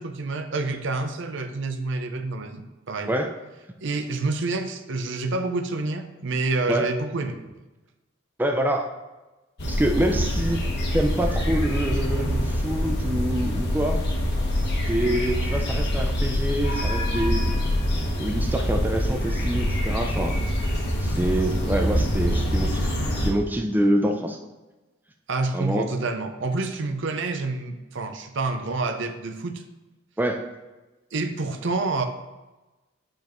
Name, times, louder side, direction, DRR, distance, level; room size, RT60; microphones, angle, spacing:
voice 1, 0.0-3.2 3.8-7.4 10.1-10.2 25.3-29.6 31.1-32.1, right 3 dB, 65° right, 7 dB, 0.6 m, -28 dB
voice 2, 8.4-8.9 9.7-10.6 10.9-14.0 14.9-17.5 18.2-20.4 21.0-22.9 23.2-24.4 25.5-25.9 30.2-30.4, right 1 dB, 10° right, 3 dB, 0.4 m, -26 dB
sound 1, 9.6-23.3, equal, 55° left, 1.3 m, -25 dB
9.4 x 5.1 x 3.0 m, 1.1 s
head